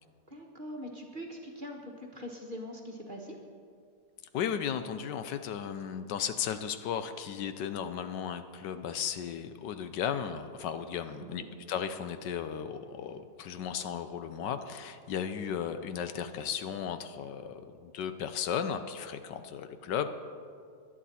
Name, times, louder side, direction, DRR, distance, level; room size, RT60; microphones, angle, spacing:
voice 1, 0.3-3.4 11.2-11.5, equal, 30° right, 1 dB, 1.3 m, -42 dB
voice 2, 4.3-20.1, left 8 dB, 75° left, 10 dB, 1.3 m, -35 dB
19.0 x 11.0 x 4.2 m, 2.2 s
omnidirectional pair, 2.0 m